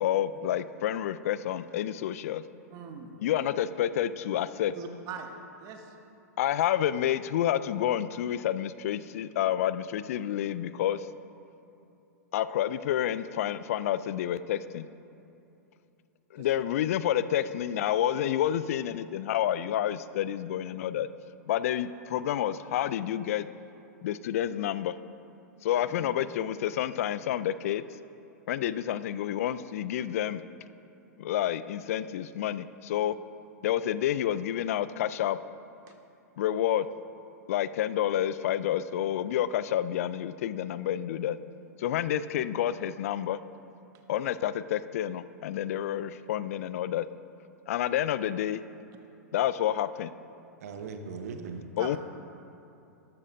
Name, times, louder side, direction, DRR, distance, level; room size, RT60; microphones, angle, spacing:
voice 1, 0.0-2.4 3.2-4.7 6.4-11.1 12.3-14.9 16.3-21.1 21.5-23.5 24.0-24.9 25.6-27.8 28.5-30.4 31.2-33.2 33.6-35.4 36.4-36.9 37.5-41.4 41.8-43.4 44.1-47.1 47.7-48.6 49.3-50.1 51.8-52.0, left 11 dB, 60° left, 15 dB, 0.4 m, -29 dB
voice 2, 2.7-3.1 4.7-5.3 5.6-5.9 16.4-16.6 26.0-26.1 35.9-36.0 51.3-51.9, right 6 dB, 40° right, 4 dB, 1.2 m, -42 dB
voice 3, 50.6-51.6, right 5 dB, 60° right, 6 dB, 1.0 m, -39 dB
12.5 x 12.5 x 2.7 m, 2.7 s
figure-of-eight pair, 100°, 9 cm